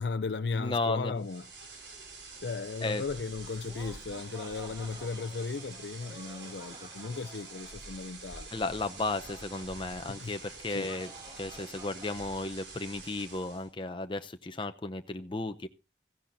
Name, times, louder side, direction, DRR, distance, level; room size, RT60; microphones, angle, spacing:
voice 1, 0.0-1.5 2.4-8.5 10.1-10.3 10.7-10.9, left 4 dB, 75° left, 0.6 m, -36 dB
voice 2, 0.5-1.2 2.8-3.0 8.5-15.7, left 2 dB, 30° left, 0.7 m, -34 dB
sound 1, 1.2-13.7, right 3 dB, 85° right, 4.3 m, -47 dB
Laughter, 3.4-12.5, equal, 20° right, 2.7 m, -52 dB
16.0 x 15.0 x 2.7 m
head